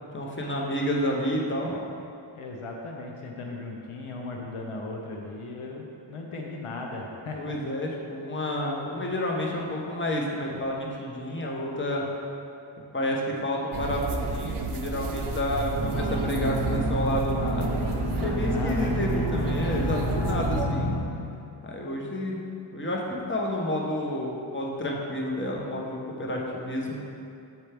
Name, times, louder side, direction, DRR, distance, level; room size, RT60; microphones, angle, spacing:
voice 1, 0.1-1.8 7.4-12.1 12.9-17.9 18.2-21.0 21.6-22.4 22.7-27.0, left 1 dB, 25° left, -2 dB, 0.9 m, -30 dB
voice 2, 2.4-7.6 18.2-19.1, left 2 dB, 85° left, 0 dB, 0.7 m, -37 dB
sound 1, 13.7-20.6, right 3 dB, 75° right, 0.6 m, -31 dB
sound 2, 15.8-21.0, equal, 60° left, 1.4 m, -29 dB
6.9 x 4.5 x 3.4 m, 2.6 s
cardioid pair, 45°, 50 cm